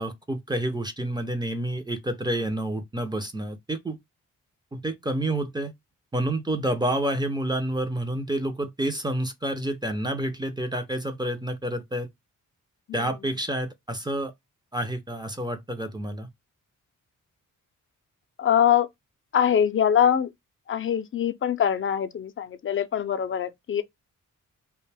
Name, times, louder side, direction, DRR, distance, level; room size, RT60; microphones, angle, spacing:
voice 1, 0.0-4.0 4.7-5.7 6.1-12.1 12.9-14.3 14.7-16.3, right 1 dB, 15° right, 0.5 m, -29 dB
voice 2, 18.4-18.9 19.3-20.3 20.7-23.8, left 9 dB, 40° left, 0.4 m, -23 dB
2.5 x 2.2 x 3.2 m
cardioid pair, 90°, 32 cm